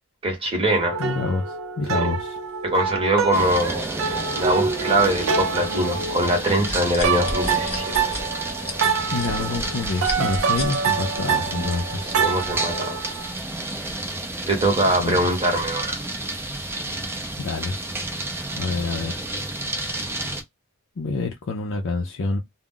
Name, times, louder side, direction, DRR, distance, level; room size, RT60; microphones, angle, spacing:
voice 1, 0.2-1.0 2.0-2.1 2.6-7.9 12.0-13.0 14.5-16.0, right 1 dB, 25° right, 0.9 m, -23 dB
sound 1, 0.8-6.7 7.0-13.3, right 5 dB, 65° right, 0.5 m, -26 dB
voice 2, 1.0-2.4 9.1-12.1 15.0-15.3 17.4-17.8 18.6-19.3 21.0-22.4, left 3 dB, 60° left, 0.5 m, -27 dB
sound 2, 3.3-20.4, right 2 dB, 10° right, 0.5 m, -31 dB
sound 3, 6.6-10.8 11.3-11.5, left 2 dB, 30° left, 1.1 m, -32 dB
2.3 x 2.0 x 3.6 m
head